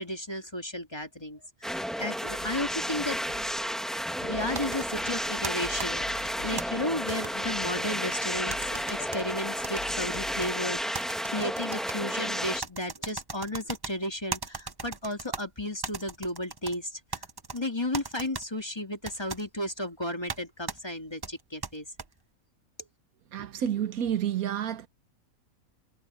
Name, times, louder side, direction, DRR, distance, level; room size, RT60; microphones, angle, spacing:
voice 1, 0.0-3.4 4.2-17.2 17.5-21.9, left 1 dB, 15° left, 2.5 m, -34 dB
sound 1, 1.6-12.6, equal, ahead, 1.8 m, -32 dB
sound 2, 2.3-10.5, left 4 dB, 65° left, 2.1 m, -48 dB
sound 3, 4.5-6.6 7.1-8.2 8.5-9.2 9.6-10.5 10.9-12.0 12.6-13.9 14.3-15.4 15.8-16.8 17.1-17.6 17.9-18.4 19.0-19.4 20.3-20.4 20.7-20.8 21.2-22.1, right 4 dB, 30° right, 0.5 m, -38 dB
voice 2, 23.3-24.9, right 9 dB, 80° right, 1.3 m, -29 dB
omnidirectional pair, 1.5 m